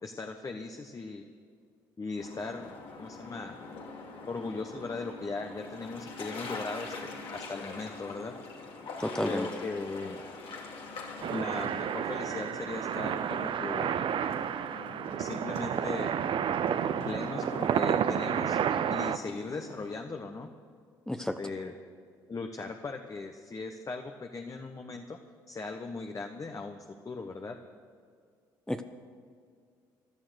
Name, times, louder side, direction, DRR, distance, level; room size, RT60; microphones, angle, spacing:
voice 1, 0.0-1.2 2.0-2.7 3.0-3.6 4.3-8.3 9.2-10.2 11.3-13.9 15.2-16.1 17.1-18.6 18.9-20.5 21.2-21.7 22.3-25.2 25.5-27.6, left 3 dB, 35° left, 4 dB, 1.2 m, -38 dB
sound 1, 2.2-19.9, left 3 dB, 65° left, 2.6 m, -44 dB
voice 2, 9.0-9.5 21.1-21.4 28.7-28.8, left 1 dB, 5° left, 7 dB, 0.9 m, -31 dB
sound 2, 11.2-19.2, right 8 dB, 55° right, 0.7 m, -30 dB
15.5 x 11.5 x 6.5 m, 2.2 s
hypercardioid pair, 55°, 10 cm